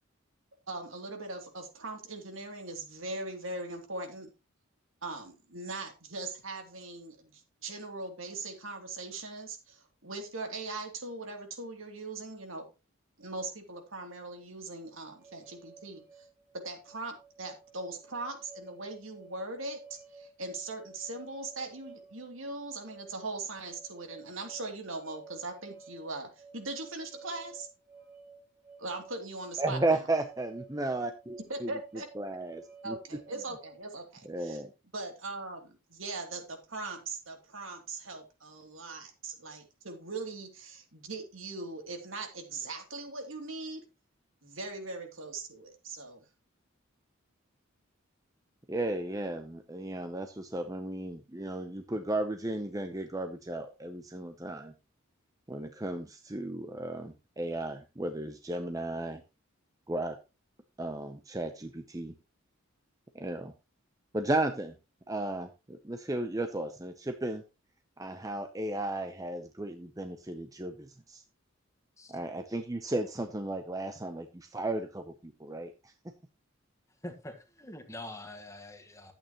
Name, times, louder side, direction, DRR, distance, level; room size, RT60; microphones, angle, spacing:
voice 1, 0.7-4.3 5.0-12.6 13.2-16.3 16.6-27.7 28.8-30.0 31.5-32.1 32.8-34.6 34.9-43.8 44.4-46.2, right 3 dB, 75° right, 2.9 m, -40 dB
sound 1, 15.2-34.0, right 4 dB, 40° right, 2.0 m, -53 dB
voice 2, 29.6-31.7 32.2-33.0 34.3-34.7 48.7-54.7 55.5-59.2 59.9-60.2 60.8-62.1 63.1-63.5 64.1-64.7 65.1-67.4 68.0-71.2 72.1-75.9, right 2 dB, 15° right, 0.7 m, -34 dB
voice 3, 77.0-79.1, left 1 dB, 15° left, 1.5 m, -44 dB
12.0 x 8.8 x 3.0 m
head